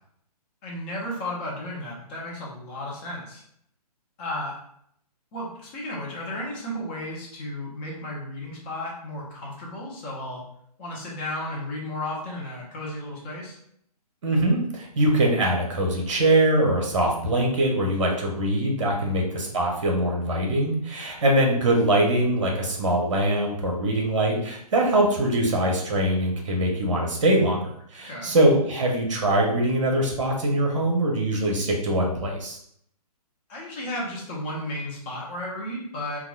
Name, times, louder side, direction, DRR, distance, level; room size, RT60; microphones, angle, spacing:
voice 1, 0.6-3.4 4.2-4.6 5.3-10.4 10.8-13.6 18.9-19.2 28.1-28.3 33.5-36.2, left 1 dB, 15° left, -3 dB, 0.5 m, -34 dB
voice 2, 14.2-32.6, right 1 dB, 50° right, 0 dB, 0.8 m, -23 dB
2.9 x 2.2 x 2.2 m, 0.69 s
figure-of-eight pair, 130°, 20 cm